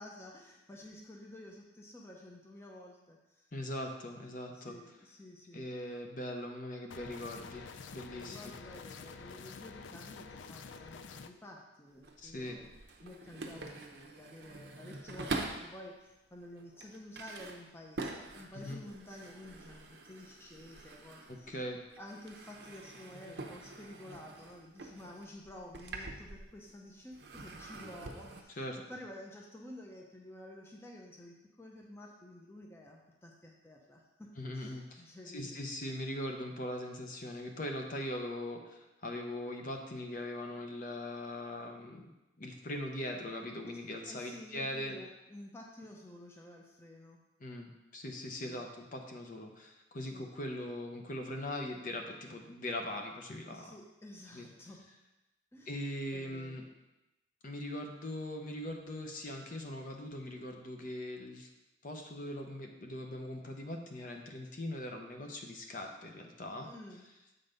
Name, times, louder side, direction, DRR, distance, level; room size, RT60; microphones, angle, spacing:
voice 1, 0.0-3.5 4.5-5.7 8.1-12.7 13.0-21.6 22.0-34.3 34.5-35.7 44.1-47.2 48.5-48.7 50.0-50.3 53.5-54.8 55.5-55.7 56.1-56.6 66.6-67.0, left 1 dB, 15° left, -1 dB, 0.7 m, -51 dB
voice 2, 3.5-4.8 5.5-8.5 12.2-12.6 18.5-18.8 21.3-21.8 28.6-28.8 34.4-42.1 42.4-45.0 47.4-53.7 54.3-54.5 55.7-56.6 57.4-61.5 61.8-66.7, left 1 dB, 45° left, 3 dB, 0.8 m, -41 dB
sound 1, 6.9-11.3, left 5 dB, 85° left, 0.4 m, -48 dB
sound 2, 11.9-15.8 16.4-21.6 21.9-26.8 27.1-28.4, right 3 dB, 65° right, 0.8 m, -45 dB
7.8 x 4.0 x 5.1 m, 0.97 s
head